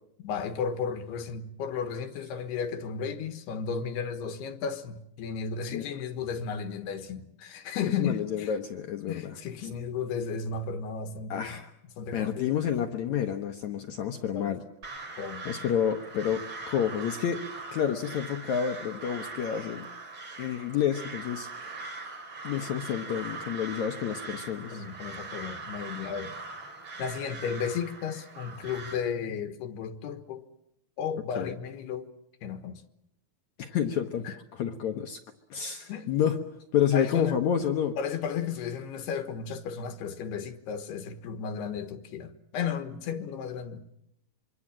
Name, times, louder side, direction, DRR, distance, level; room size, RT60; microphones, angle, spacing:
voice 1, 0.2-8.5 9.1-11.6 12.0-12.6 14.3-14.6 15.2-15.5 24.7-26.4 27.0-30.5 31.0-32.1 32.4-32.8 34.2-34.4 35.9-36.1 36.9-37.4 38.0-43.9, left 6 dB, 90° left, 3.4 m, -34 dB
voice 2, 8.0-9.3 11.3-11.7 12.1-14.6 15.4-17.4 17.7-19.9 20.4-22.0 22.4-24.8 31.4-31.5 33.6-34.2 34.5-35.2 35.5-36.4 36.7-38.0, left 9 dB, 70° left, 1.8 m, -29 dB
Crow, 14.8-29.0, right 3 dB, 35° right, 2.8 m, -41 dB
26.0 x 23.5 x 7.4 m
omnidirectional pair, 4.6 m